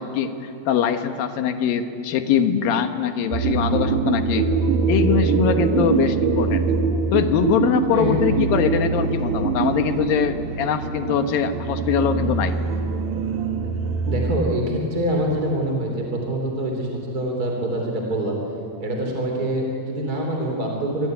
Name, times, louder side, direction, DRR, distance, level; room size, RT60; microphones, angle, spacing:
voice 1, 0.0-4.5 4.9-6.6 7.1-12.6, left 7 dB, 75° left, 7 dB, 3.1 m, -22 dB
sound 1, 3.3-14.6, right 5 dB, 70° right, 3.2 m, -23 dB
voice 2, 7.9-8.3 14.1-18.4 18.8-21.1, right 1 dB, 25° right, 1 dB, 3.6 m, -25 dB
27.0 x 22.0 x 9.2 m, 2.5 s
omnidirectional pair, 4.3 m